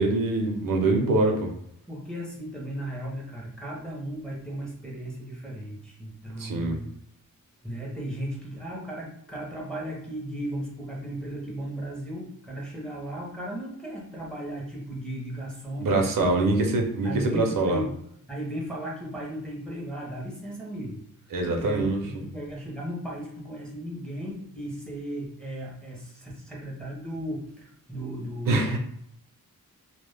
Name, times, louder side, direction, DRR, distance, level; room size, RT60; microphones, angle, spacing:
voice 1, 0.0-1.5 6.4-6.8 15.8-17.8 21.3-22.0 28.5-28.8, right 2 dB, 70° right, 2 dB, 0.5 m, -24 dB
voice 2, 1.9-6.9 7.6-16.6 17.0-21.0 21.4-28.8, right 1 dB, 5° left, -4 dB, 0.5 m, -36 dB
2.1 x 2.0 x 3.2 m, 0.71 s
wide cardioid pair, 165°, 34 cm